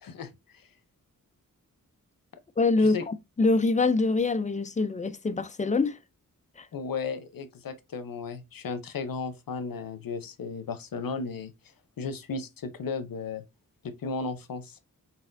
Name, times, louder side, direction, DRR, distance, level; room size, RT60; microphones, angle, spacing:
voice 1, 0.0-0.7 2.8-3.1 6.7-11.5 12.0-13.4 13.8-14.8, left 4 dB, 85° left, 0.8 m, -35 dB
voice 2, 2.6-6.0 6.6-6.7, left 3 dB, 25° left, 0.4 m, -25 dB
4.4 x 4.1 x 2.5 m
wide cardioid pair, 130°, 33 cm